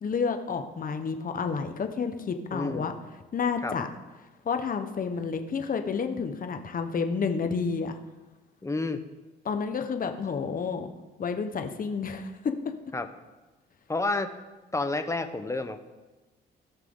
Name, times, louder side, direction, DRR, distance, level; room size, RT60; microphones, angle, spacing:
voice 1, 0.0-2.9 3.3-3.9 4.4-7.9 9.4-10.9 11.2-12.5, left 5 dB, 45° left, 6 dB, 1.1 m, -30 dB
voice 2, 2.5-3.0 3.6-3.7 8.6-9.0 12.9-13.1 13.9-14.3 14.7-15.8, left 2 dB, 15° left, 9 dB, 0.9 m, -30 dB
17.5 x 5.9 x 3.9 m, 1.2 s
cardioid pair, 90°, 20 cm